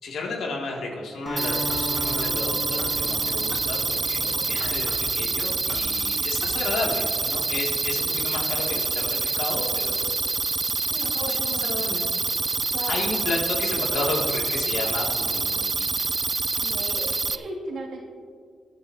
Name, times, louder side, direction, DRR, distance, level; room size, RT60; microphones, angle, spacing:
voice 1, 0.0-10.1 10.8-12.0 12.9-15.9, left 3 dB, 80° left, -1 dB, 2.4 m, -32 dB
Acoustic guitar, 1.3-5.7, equal, 10° right, 1.3 m, -37 dB
sound 1, 1.4-17.4, right 4 dB, 30° right, 0.4 m, -26 dB
sound 2, 1.7-2.2 2.8-3.0 3.5-3.7 4.6-5.1 5.7-5.9 6.4-6.6, left 2 dB, 45° left, 2.2 m, -39 dB
voice 2, 16.6-18.0, right 1 dB, 65° right, -2 dB, 2.4 m, -36 dB
21.5 x 10.5 x 2.8 m, 2.2 s
cardioid pair, 125°, 0 cm